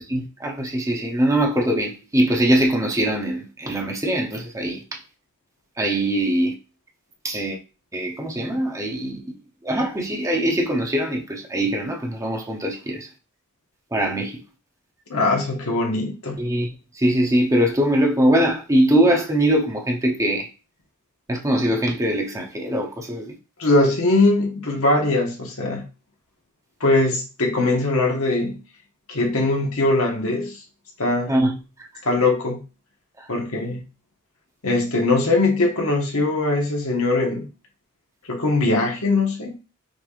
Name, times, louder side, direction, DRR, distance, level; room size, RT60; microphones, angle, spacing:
voice 1, 0.1-4.8 5.8-6.5 7.2-7.6 7.9-9.2 9.6-13.1 13.9-14.4 16.4-20.5 21.3-23.4 31.3-31.6, right 1 dB, 15° right, 0.7 m, -22 dB
voice 2, 15.1-16.4 23.6-25.8 26.8-28.6 29.1-30.6 31.0-31.3 32.0-32.6 33.3-33.8 34.6-37.5 38.3-39.6, left 2 dB, 75° left, 1.4 m, -21 dB
6.1 x 3.4 x 2.5 m
head